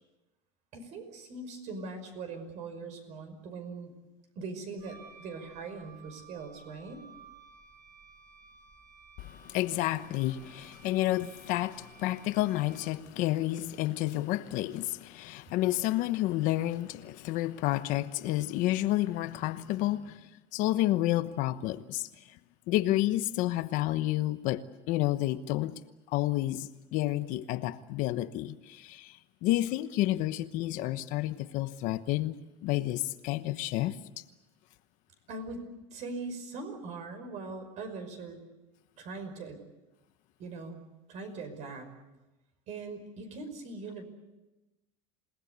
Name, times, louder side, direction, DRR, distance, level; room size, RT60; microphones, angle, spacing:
voice 1, 0.7-3.9 4.4-7.0 35.3-38.4 39.0-39.6 40.4-40.8 41.1-41.9 42.7-44.0, right 3 dB, 50° right, 5.6 m, -41 dB
Wind instrument woodwind instrument, 4.8-13.1, right 5 dB, 20° right, 6.4 m, -55 dB
voice 2, 9.2-22.4 22.7-25.8 26.1-34.0, left 15 dB, 55° left, 1.0 m, -30 dB
28.0 x 19.0 x 8.3 m
cardioid pair, 155°, 16 cm